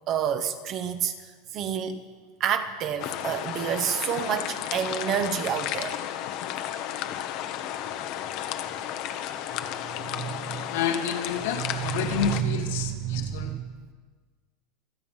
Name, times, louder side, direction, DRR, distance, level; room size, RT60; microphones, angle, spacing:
voice 1, 0.1-1.1 1.5-2.1 2.4-6.0 9.5-10.6 11.5-13.7, right 9 dB, 40° right, 1.2 m, -29 dB
sound 1, 3.0-12.4, left 11 dB, 50° left, 1.1 m, -33 dB
voice 2, 10.7-13.5, left 7 dB, 75° left, 1.7 m, -29 dB
26.5 x 8.9 x 5.6 m
supercardioid pair, 145°, 0 cm